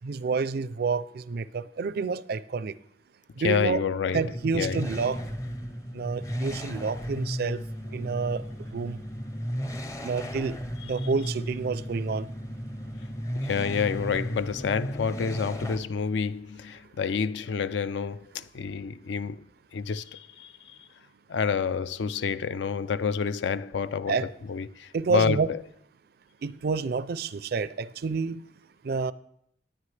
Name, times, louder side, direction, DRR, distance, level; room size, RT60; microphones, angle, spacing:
voice 1, 0.0-2.8 3.4-3.8 4.1-5.2 5.9-7.6 7.9-8.4 8.7-9.0 10.0-10.6 10.8-12.3 24.1-24.2 24.9-25.5 26.4-28.4 28.8-29.1, right 5 dB, 55° right, 0.4 m, -29 dB
voice 2, 3.4-4.8 13.3-19.5 19.7-20.9 21.3-25.6, left 6 dB, 65° left, 0.4 m, -29 dB
sound 1, 4.1-15.8, equal, 15° left, 0.6 m, -35 dB
19.0 x 9.1 x 3.3 m
head